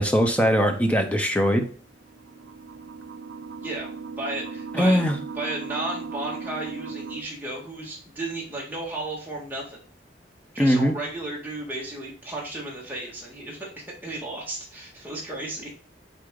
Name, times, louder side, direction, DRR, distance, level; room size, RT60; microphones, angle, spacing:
voice 1, 0.0-1.7 4.7-5.2 10.6-10.9, equal, 5° left, 5 dB, 0.8 m, -20 dB
sound 1, 1.9-7.2, right 5 dB, 75° right, 0.5 m, -37 dB
voice 2, 4.2-5.0 5.4-9.8 10.5-15.7, right 2 dB, 10° right, -4 dB, 2.0 m, -34 dB
6.7 x 4.1 x 3.9 m, 0.41 s
head